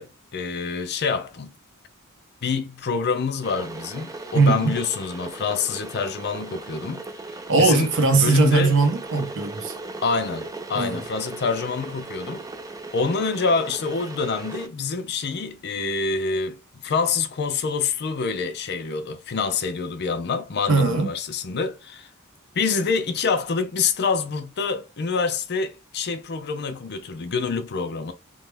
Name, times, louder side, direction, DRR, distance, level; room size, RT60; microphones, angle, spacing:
voice 1, 0.0-1.5 2.4-7.0 7.3-7.9 8.2-8.7 10.0-12.4 12.9-22.1 22.6-28.1, left 5 dB, 50° left, 0.5 m, -26 dB
Water / Boiling, 3.4-14.7, right 2 dB, 15° right, 0.4 m, -37 dB
voice 2, 4.3-4.8 7.5-9.7 10.7-11.0 20.7-21.1, right 4 dB, 60° right, 0.7 m, -20 dB
3.1 x 2.1 x 3.3 m
head